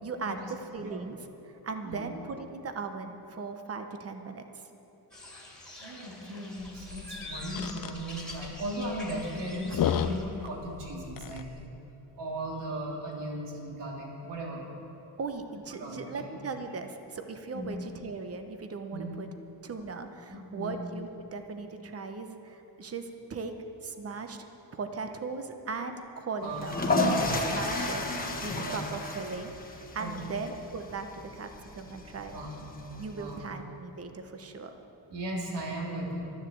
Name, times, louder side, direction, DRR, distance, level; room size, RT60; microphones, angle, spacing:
voice 1, 0.0-1.2 1.6-4.5 15.2-19.3 19.6-23.5 23.8-24.5 24.7-26.9 27.2-28.0 28.4-31.1 31.3-32.4 33.0-34.7, right 4 dB, 35° right, 7 dB, 1.0 m, -38 dB
sound 1, 5.1-10.2, left 1 dB, ahead, 2.3 m, -45 dB
voice 2, 5.8-11.6 12.2-14.6 15.8-16.3 17.5-17.7 18.9-19.1 20.3-20.7 26.4-27.0 27.5-27.7 28.6-28.8 30.0-30.2 32.3-32.7 33.1-33.4 35.1-36.2, right 1 dB, 80° right, -2 dB, 3.0 m, -37 dB
sound 2, 6.6-11.7, left 9 dB, 55° left, 0.6 m, -35 dB
sound 3, 26.5-33.3, left 2 dB, 20° left, 1.4 m, -32 dB
12.5 x 11.0 x 7.8 m, 2.9 s
cardioid pair, 140°, 42 cm